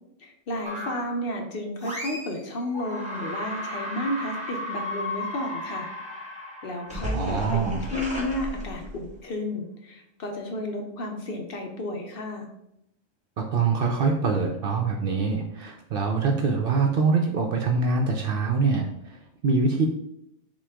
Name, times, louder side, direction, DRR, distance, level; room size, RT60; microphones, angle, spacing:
voice 1, 0.2-5.9 6.6-12.5, left 1 dB, 55° left, 2 dB, 0.7 m, -32 dB
sound 1, 0.7-1.2 1.8-2.4 2.7-9.2, left 1 dB, 5° right, 0.9 m, -34 dB
voice 2, 7.1-7.9 13.4-19.9, right 4 dB, 60° right, 3 dB, 0.6 m, -24 dB
5.9 x 2.3 x 3.4 m, 0.80 s
omnidirectional pair, 1.3 m